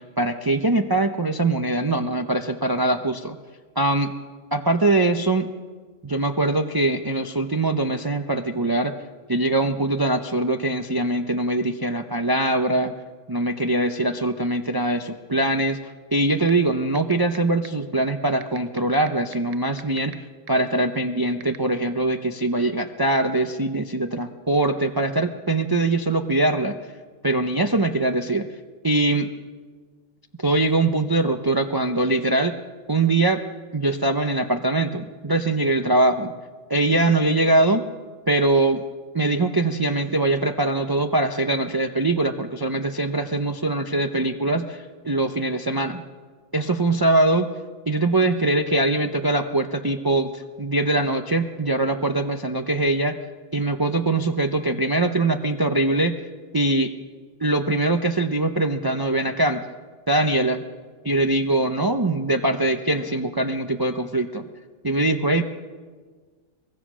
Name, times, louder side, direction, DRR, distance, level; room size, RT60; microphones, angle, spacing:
voice 1, 0.0-3.4 3.8-4.1 4.5-5.5 6.0-8.9 9.3-12.9 13.3-26.8 27.2-28.5 28.8-29.3 30.4-32.6 32.9-33.4 33.7-36.3 36.7-37.8 38.3-38.8 39.1-46.0 46.5-47.5 47.9-53.2 53.5-56.2 56.5-56.9 57.4-59.6 60.1-60.6 61.0-64.4 64.8-65.4, right 2 dB, 20° right, 6 dB, 0.7 m, -22 dB
sound 1, 16.5-16.6 17.0-17.4 17.6-17.7 18.4-20.1 20.5-20.6 21.4-21.6, right 9 dB, 75° right, 1.2 m, -37 dB
23.5 x 21.0 x 6.3 m, 1.5 s
omnidirectional pair, 1.3 m